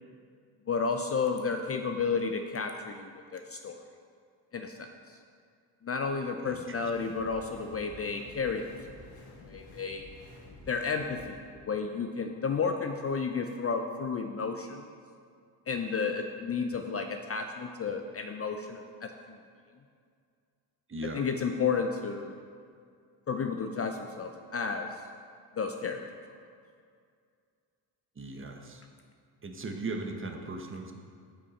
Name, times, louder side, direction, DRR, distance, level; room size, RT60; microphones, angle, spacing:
voice 1, 0.7-3.8 4.5-4.9 5.8-8.7 9.4-10.1 10.7-14.9 15.7-19.1 21.1-22.4 23.3-24.9 25.6-26.0, left 5 dB, 30° left, 5 dB, 0.5 m, -32 dB
voice 2, 6.4-7.1 20.9-21.3 28.2-28.8 29.4-30.9, right 2 dB, 25° right, 3 dB, 1.0 m, -38 dB
sound 1, 6.9-11.3, left 1 dB, 50° left, 1.4 m, -50 dB
8.4 x 5.6 x 4.1 m, 2.3 s
supercardioid pair, 65°, 47 cm